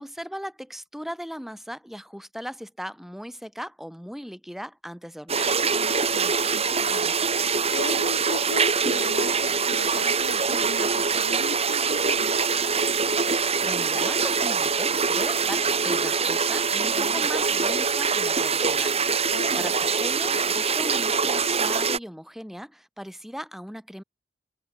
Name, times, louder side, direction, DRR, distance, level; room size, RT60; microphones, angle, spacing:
voice 1, 0.0-5.5 13.3-24.0, equal, ahead, 6.4 m, -38 dB
sound 1, 5.3-22.0, right 5 dB, 35° right, 5.0 m, -24 dB
voice 2, 5.7-12.5 16.9-17.3 19.3-19.8, left 2 dB, 80° left, 6.3 m, -38 dB
head